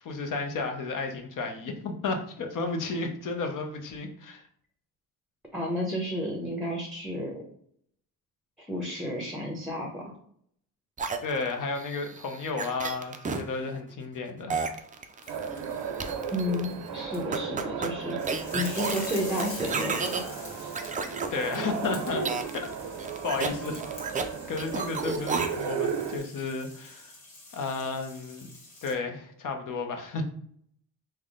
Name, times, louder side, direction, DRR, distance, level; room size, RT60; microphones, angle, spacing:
voice 1, 0.0-4.4 11.2-14.6 21.3-22.2 23.2-23.9 24.5-27.1 27.5-28.5 28.8-30.2, left 3 dB, 55° left, 4 dB, 0.7 m, -32 dB
voice 2, 5.5-7.3 8.6-10.1 16.3-18.2 18.5-20.2, left 1 dB, ahead, 0 dB, 0.7 m, -31 dB
sound 1, 11.0-13.4 14.5-15.6 16.0-16.7 17.3-20.2 20.7-21.3 22.2-22.7 23.0-24.3 24.6-25.7, right 4 dB, 20° right, 0.3 m, -32 dB
sound 2, 15.2-17.4 18.2-28.9, left 2 dB, 75° left, 1.4 m, -46 dB
sound 3, 15.3-26.2, right 6 dB, 85° right, 0.6 m, -35 dB
3.4 x 2.2 x 3.6 m, 0.65 s
cardioid pair, 85°, 38 cm